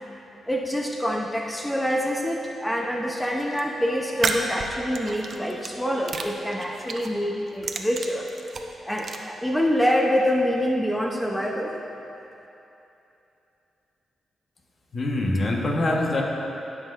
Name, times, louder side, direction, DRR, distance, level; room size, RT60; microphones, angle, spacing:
voice 1, 0.5-8.3 8.8-11.8, equal, 5° left, 0 dB, 0.7 m, -26 dB
sound 1, 3.2-3.6 4.1-5.7 6.1-7.1 7.5-9.2, right 4 dB, 60° right, 0.7 m, -31 dB
voice 2, 14.9-16.2, left 2 dB, 50° left, -1 dB, 1.3 m, -24 dB
15.0 x 6.2 x 2.6 m, 2.9 s
supercardioid pair, 55°, 0 cm